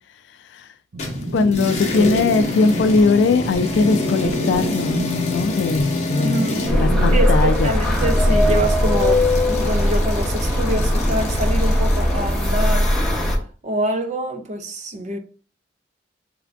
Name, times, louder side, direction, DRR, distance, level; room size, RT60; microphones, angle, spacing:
sound 1, 0.9-7.2, equal, 75° right, 0.7 m, -28 dB
sound 2, 1.0-12.8, left 2 dB, 40° left, 0.8 m, -29 dB
voice 1, 1.3-7.8, left 3 dB, 80° left, 0.3 m, -20 dB
voice 2, 6.2-12.9 13.6-15.2, equal, 40° right, 0.6 m, -26 dB
sound 3, 6.7-13.4, left 1 dB, 5° left, 0.8 m, -19 dB
3.4 x 2.5 x 3.3 m
head